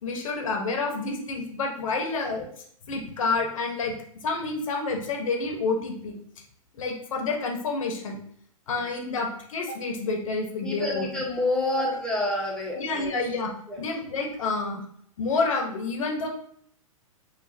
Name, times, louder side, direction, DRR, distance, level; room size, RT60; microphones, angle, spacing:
voice 1, 0.0-2.5 2.9-4.0 4.2-6.2 6.7-8.2 8.7-11.0 11.8-11.9 12.8-13.5 13.8-14.8 15.2-16.3, left 3 dB, 65° left, 2 dB, 1.1 m, -29 dB
voice 2, 10.6-13.1 13.7-13.8, left 2 dB, 5° left, -4 dB, 1.2 m, -28 dB
5.9 x 2.6 x 2.7 m, 0.64 s
hypercardioid pair, 110°, 18 cm